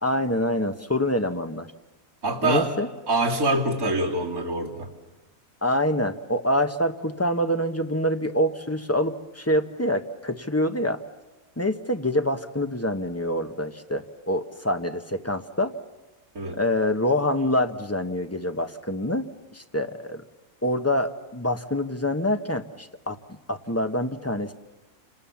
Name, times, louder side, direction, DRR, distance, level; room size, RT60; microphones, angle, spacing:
voice 1, 0.0-1.7 2.4-2.9 5.6-11.0 11.6-15.7 16.5-19.3 19.5-20.2 20.6-23.2 23.5-24.5, left 1 dB, 10° left, 7 dB, 0.9 m, -26 dB
voice 2, 2.2-2.7 3.1-4.9 16.4-16.6, right 2 dB, 80° right, -3 dB, 3.6 m, -25 dB
29.5 x 27.0 x 7.2 m, 1.1 s
omnidirectional pair, 1.5 m